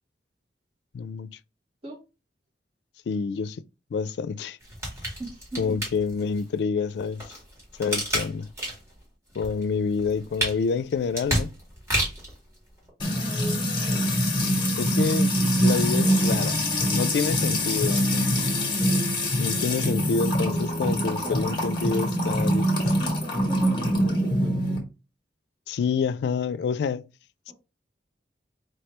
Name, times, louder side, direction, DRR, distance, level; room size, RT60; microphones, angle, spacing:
voice 1, 0.9-1.4 3.1-3.6 3.9-4.6 5.6-7.3 7.8-8.5 9.4-11.5 14.8-16.6 16.9-18.3 19.4-23.0 25.7-27.0 27.5-27.6, left 5 dB, 80° left, 0.3 m, -28 dB
sound 1, 4.6-6.4 7.0-9.0 9.3-12.4 12.9-13.0, right 1 dB, 15° right, 1.9 m, -30 dB
voice 2, 5.2-5.8 13.1-14.1 21.1-21.6 23.0-24.5, right 2 dB, 35° right, 1.6 m, -39 dB
Music / Water tap faucet / Trickle dribble, 13.0-24.8, equal, 25° left, 1.4 m, -24 dB
4.7 x 2.9 x 3.3 m
head